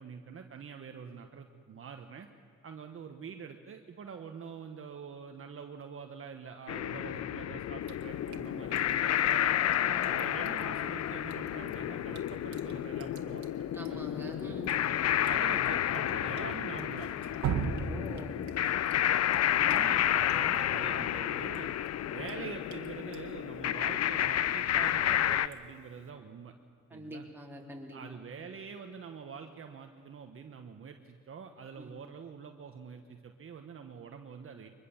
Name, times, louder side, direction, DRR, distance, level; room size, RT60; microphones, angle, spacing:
voice 1, 0.0-2.3 2.6-9.5 10.1-13.7 14.3-14.6 15.3-17.1 19.5-21.7 22.1-26.5 26.9-27.2 27.9-34.7, right 6 dB, 45° right, 5 dB, 1.3 m, -45 dB
sound 1, 6.7-25.5, left 11 dB, 55° left, 0.6 m, -30 dB
Drip, 7.8-26.1, right 6 dB, 70° right, 1.8 m, -44 dB
voice 2, 13.7-14.8 17.7-18.4 19.5-20.3 20.7-21.0 26.9-28.0 31.8-31.9, right 1 dB, 5° right, -1 dB, 3.9 m, -45 dB
23.0 x 20.5 x 7.2 m, 2.1 s
cardioid pair, 90°, 30 cm